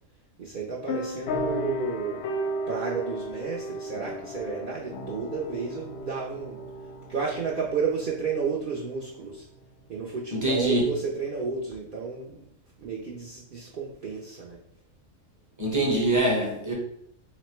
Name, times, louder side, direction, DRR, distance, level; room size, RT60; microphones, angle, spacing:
voice 1, 0.4-2.2 2.7-6.6 7.1-9.4 9.9-12.3 12.8-14.6, right 5 dB, 60° right, -4 dB, 0.5 m, -32 dB
sound 1, 0.9-9.0, equal, 65° left, 0.7 m, -35 dB
voice 2, 10.3-10.8 15.6-16.7, right 1 dB, 20° right, -2 dB, 0.6 m, -24 dB
4.1 x 2.1 x 4.3 m, 0.70 s
omnidirectional pair, 1.4 m